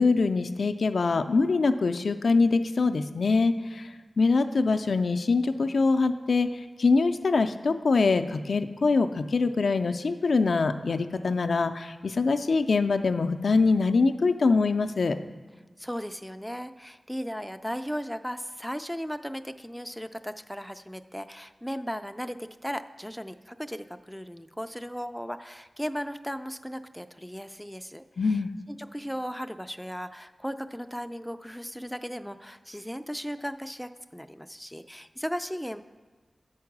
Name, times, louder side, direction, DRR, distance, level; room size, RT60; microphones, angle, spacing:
voice 1, 0.0-3.9 4.2-15.2 28.2-28.5, left 4 dB, 80° left, 8 dB, 0.4 m, -24 dB
voice 2, 15.8-28.4 28.7-35.8, equal, ahead, 9 dB, 0.3 m, -36 dB
7.7 x 4.7 x 5.9 m, 1.4 s
wide cardioid pair, 65°, 0 cm